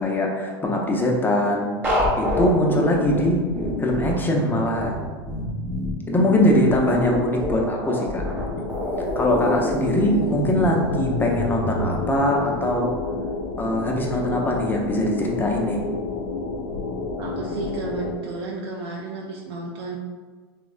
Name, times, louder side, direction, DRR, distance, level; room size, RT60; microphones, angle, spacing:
voice 1, 0.0-1.7 2.2-3.4 3.8-5.1 6.1-8.2 9.0-12.9 13.6-15.8 17.5-17.6, left 1 dB, 15° left, 0 dB, 0.5 m, -22 dB
sound 1, 1.8-12.0, equal, 15° right, 0.8 m, -27 dB
sound 2, 8.1-18.2, left 4 dB, 70° left, 0.5 m, -30 dB
voice 2, 17.2-20.0, right 3 dB, 70° right, -1 dB, 0.4 m, -32 dB
3.5 x 2.1 x 2.4 m, 1.4 s
hypercardioid pair, 95°, 14 cm